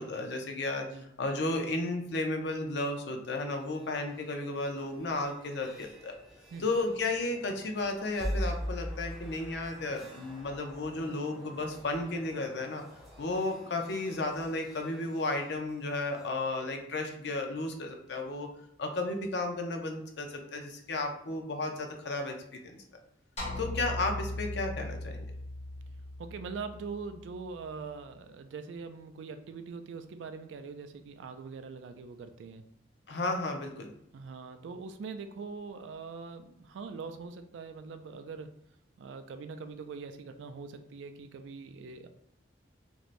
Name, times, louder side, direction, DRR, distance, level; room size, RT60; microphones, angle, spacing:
voice 1, 0.0-6.2 6.6-12.8 13.2-18.5 18.8-22.3 22.6-22.8 23.6-25.2 33.1-33.9, left 2 dB, 65° left, 4 dB, 0.5 m, -33 dB
sound 1, 3.6-16.4, equal, ahead, 0.5 m, -43 dB
sound 2, 23.4-27.8, left 1 dB, 35° left, 0.7 m, -39 dB
voice 2, 26.2-32.6 34.1-38.5 39.0-42.1, right 4 dB, 75° right, 9 dB, 0.3 m, -42 dB
3.1 x 2.6 x 2.5 m, 0.75 s
head